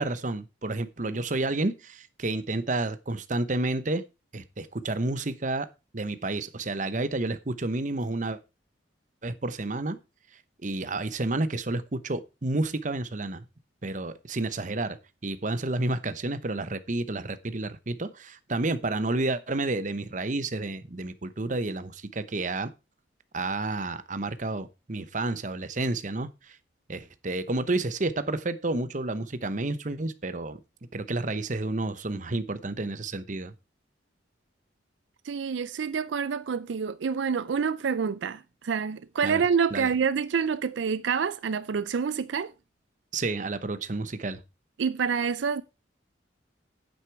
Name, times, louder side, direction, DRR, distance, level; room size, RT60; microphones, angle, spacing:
voice 1, 0.0-4.0 4.3-8.4 9.2-10.0 10.6-13.4 13.8-22.7 23.3-26.6 26.9-30.6 30.9-33.5 39.2-39.4 39.7-39.9 43.1-44.4, right 2 dB, 40° right, 0.9 m, -30 dB
voice 2, 35.2-42.5 44.8-45.6, right 6 dB, 75° right, 0.4 m, -27 dB
9.2 x 8.1 x 4.7 m
head